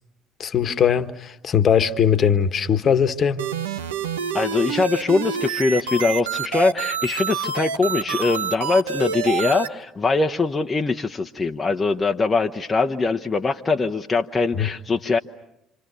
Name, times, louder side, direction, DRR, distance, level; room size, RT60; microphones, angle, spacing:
voice 1, 0.4-3.5 14.5-14.7, left 8 dB, 45° left, 1.4 m, -20 dB
sound 1, 3.4-9.7, right 7 dB, 85° right, 1.0 m, -27 dB
voice 2, 4.3-15.2, left 3 dB, 25° left, 1.0 m, -22 dB
28.0 x 27.0 x 7.0 m
hypercardioid pair, 55°, 0 cm